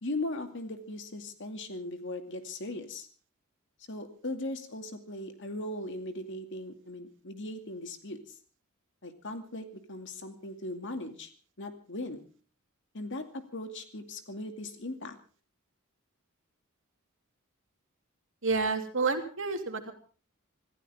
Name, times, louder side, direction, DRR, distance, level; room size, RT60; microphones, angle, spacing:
voice 1, 0.0-3.1 3.9-8.4 9.0-11.3 11.6-12.2 12.9-15.2, left 2 dB, 60° left, 7 dB, 2.4 m, -38 dB
voice 2, 18.4-19.9, right 4 dB, 60° right, 5 dB, 2.8 m, -29 dB
26.5 x 14.5 x 3.6 m, 0.39 s
head